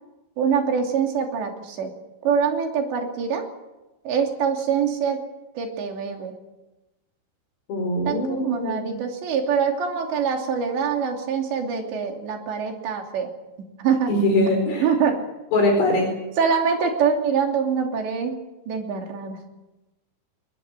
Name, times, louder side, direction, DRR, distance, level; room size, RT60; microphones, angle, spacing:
voice 1, 0.4-1.9 2.2-3.4 4.0-5.2 5.5-6.3 8.1-13.3 13.8-14.1 14.8-15.1 16.4-18.4 18.7-19.4, right 6 dB, 85° right, 3 dB, 5.1 m, -24 dB
voice 2, 7.7-9.0 14.1-14.9 15.5-16.1, left 1 dB, 75° left, 1 dB, 6.8 m, -22 dB
21.5 x 21.5 x 8.1 m, 1.0 s
omnidirectional pair, 4.9 m